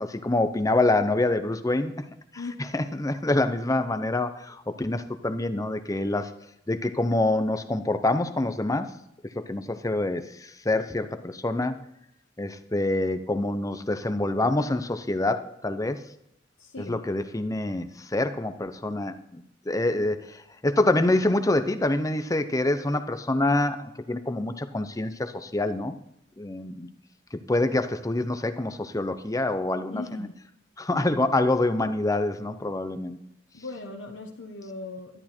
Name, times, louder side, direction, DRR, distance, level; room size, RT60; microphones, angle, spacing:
voice 1, 0.0-1.9 2.7-6.3 6.7-8.9 9.4-11.8 12.4-16.0 16.8-25.9 26.4-26.9 27.3-30.3 30.8-33.2, left 2 dB, 20° left, 9 dB, 0.8 m, -26 dB
voice 2, 16.6-17.0 29.9-30.4 33.5-35.2, left 3 dB, 85° left, 0 dB, 1.3 m, -38 dB
12.5 x 11.0 x 4.4 m, 0.79 s
head